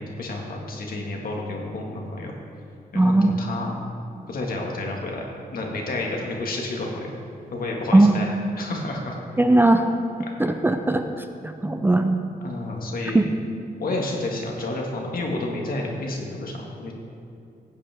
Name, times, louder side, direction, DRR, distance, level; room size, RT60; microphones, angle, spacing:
voice 1, 0.0-2.3 2.9-3.8 4.3-5.2 5.5-7.1 7.5-8.3 8.6-9.2 10.3-10.4 12.4-13.3 13.8-16.9, left 2 dB, 65° left, 0 dB, 1.9 m, -30 dB
voice 2, 2.9-3.3 7.9-8.1 9.4-9.9 10.4-12.2 13.1-13.2, right 2 dB, 15° right, 6 dB, 0.5 m, -18 dB
15.0 x 8.6 x 3.6 m, 2.7 s
cardioid pair, 100°, 16 cm